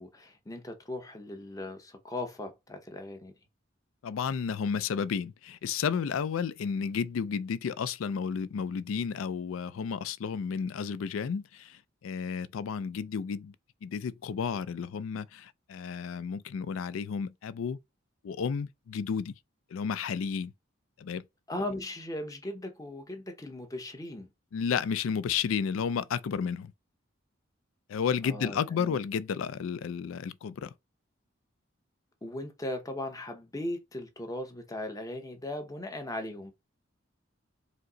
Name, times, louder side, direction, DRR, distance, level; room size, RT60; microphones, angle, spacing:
voice 1, 0.0-3.3 21.5-24.3 28.2-29.0 32.2-36.5, left 1 dB, 15° left, 0.7 m, -38 dB
voice 2, 4.0-13.5 13.8-17.8 18.2-19.3 19.7-20.5 21.0-21.2 24.5-26.7 27.9-30.7, left 6 dB, 85° left, 0.4 m, -32 dB
5.1 x 2.0 x 3.8 m
head